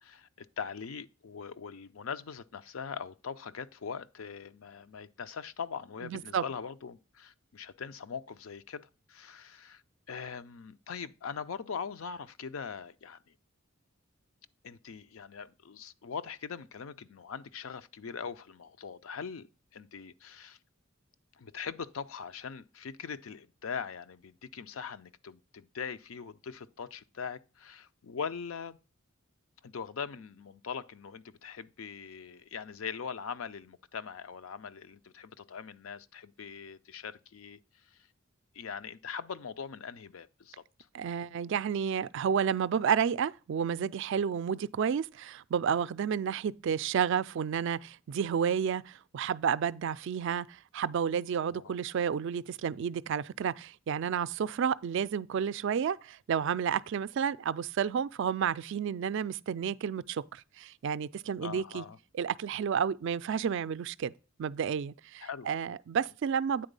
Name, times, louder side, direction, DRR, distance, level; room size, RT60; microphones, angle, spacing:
voice 1, 0.0-9.8 10.1-13.3 14.6-19.5 19.7-20.6 21.4-28.8 29.6-37.6 37.9-38.1 38.5-40.6 51.5-51.7 61.4-62.0 65.2-65.5, left 6 dB, 75° left, 0.5 m, -41 dB
voice 2, 6.0-6.4 40.9-61.8 62.1-64.1 64.4-66.7, right 7 dB, 60° right, 0.3 m, -31 dB
8.9 x 4.0 x 5.2 m
head